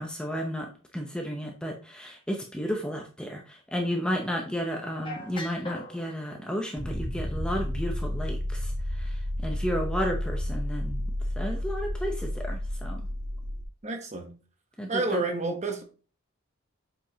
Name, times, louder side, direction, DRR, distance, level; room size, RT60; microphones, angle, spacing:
voice 1, 0.0-11.0 11.4-13.1 14.8-15.2, equal, 5° left, 0.7 m, -33 dB
sound 1, 5.0-6.0 6.8-13.6, left 1 dB, 25° left, 1.1 m, -32 dB
voice 2, 13.8-14.3 14.9-15.8, right 3 dB, 30° right, 1.1 m, -29 dB
7.4 x 5.1 x 2.9 m
head